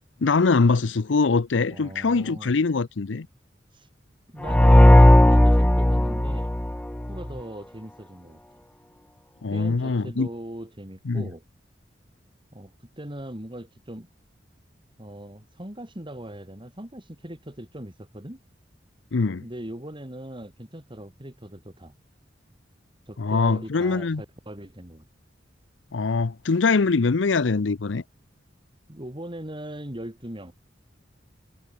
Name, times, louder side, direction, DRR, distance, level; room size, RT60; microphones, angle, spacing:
voice 1, 0.2-3.3 9.4-10.3 11.1-11.2 19.1-19.4 23.2-24.2 25.9-28.0, left 4 dB, 80° left, 0.7 m, -23 dB
voice 2, 1.7-2.5 3.7-3.9 4.3-6.5 7.1-8.4 9.5-11.4 12.5-14.1 15.0-18.4 19.4-21.9 23.1-25.1 28.9-30.5, right 1 dB, 25° right, 3.5 m, -39 dB
sound 1, 4.4-7.3, left 1 dB, 5° left, 0.4 m, -15 dB
head